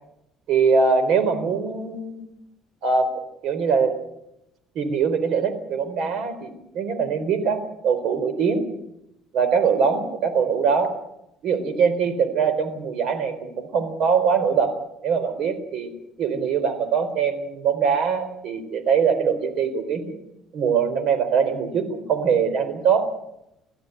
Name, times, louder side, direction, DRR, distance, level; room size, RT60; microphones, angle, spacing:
voice 1, 0.5-2.3 2.8-3.1 3.4-3.9 4.7-8.6 9.3-10.9 11.4-14.7 15.0-15.9 16.2-20.2 20.5-23.1, right 6 dB, 65° right, 11 dB, 4.1 m, -22 dB
23.5 x 15.5 x 8.1 m, 0.84 s
cardioid pair, 120°, 0 cm